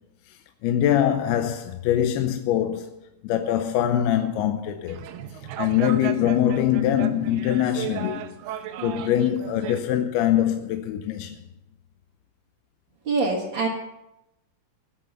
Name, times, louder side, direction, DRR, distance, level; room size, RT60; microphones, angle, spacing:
voice 1, 0.6-2.9 3.2-5.0 5.6-8.3 8.8-11.4, left 11 dB, 80° left, 2.7 m, -23 dB
sound 1, 4.9-9.8, right 10 dB, 85° right, 2.9 m, -35 dB
voice 2, 13.1-13.7, right 3 dB, 40° right, 1.9 m, -24 dB
18.5 x 7.7 x 6.8 m
omnidirectional pair, 4.6 m